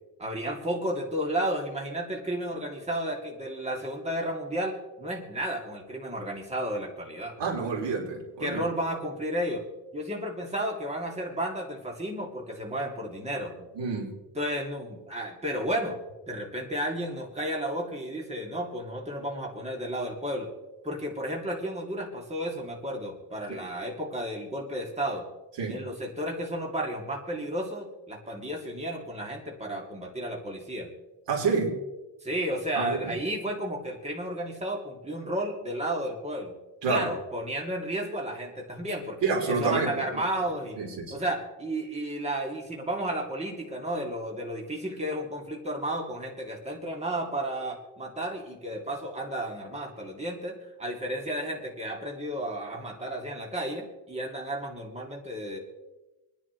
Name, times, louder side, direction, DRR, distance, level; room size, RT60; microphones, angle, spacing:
voice 1, 0.2-7.4 8.4-9.6 9.9-13.7 14.3-16.0 16.3-20.5 20.8-25.3 25.7-30.9 32.2-36.6 36.9-40.8 41.1-55.6, right 1 dB, 15° right, 0 dB, 2.5 m, -33 dB
voice 2, 7.4-8.6 13.8-14.1 23.5-23.7 25.6-25.8 31.3-31.8 32.7-33.1 36.8-37.1 39.2-39.9 40.8-41.2, right 4 dB, 80° right, 0 dB, 3.6 m, -28 dB
27.0 x 10.5 x 3.1 m, 1.1 s
cardioid pair, 125°, 42 cm